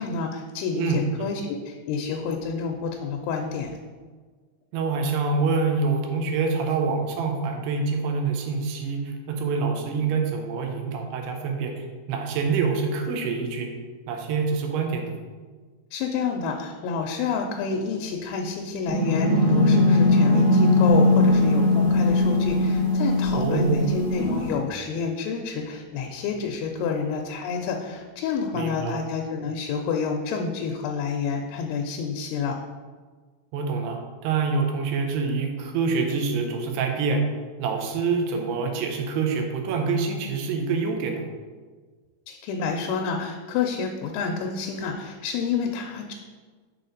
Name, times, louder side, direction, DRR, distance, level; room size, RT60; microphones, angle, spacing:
voice 1, 0.0-3.8 15.9-32.6 42.3-46.1, left 5 dB, 90° left, 2 dB, 2.6 m, -29 dB
voice 2, 4.7-13.7 14.1-15.1 23.3-23.9 28.5-29.0 33.5-37.2 37.6-41.2, right 4 dB, 90° right, 3 dB, 2.8 m, -26 dB
sound 1, 18.9-24.5, left 2 dB, 65° right, 1.8 m, -20 dB
6.7 x 4.2 x 3.9 m, 1.5 s
omnidirectional pair, 4.6 m